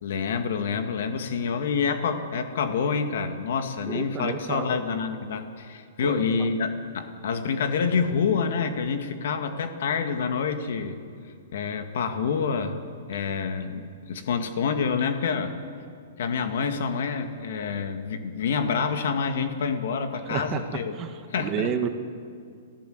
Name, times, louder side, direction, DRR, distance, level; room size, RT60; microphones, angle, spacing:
voice 1, 0.0-11.0 11.5-12.8 13.1-15.6 16.2-21.0 21.3-21.7, left 5 dB, 65° left, 7 dB, 2.0 m, -27 dB
voice 2, 3.9-4.8 6.0-6.3 20.3-20.6 20.9-21.9, right 8 dB, 25° right, 7 dB, 1.5 m, -30 dB
27.0 x 15.5 x 8.0 m, 2.2 s
hypercardioid pair, 140°, 0 cm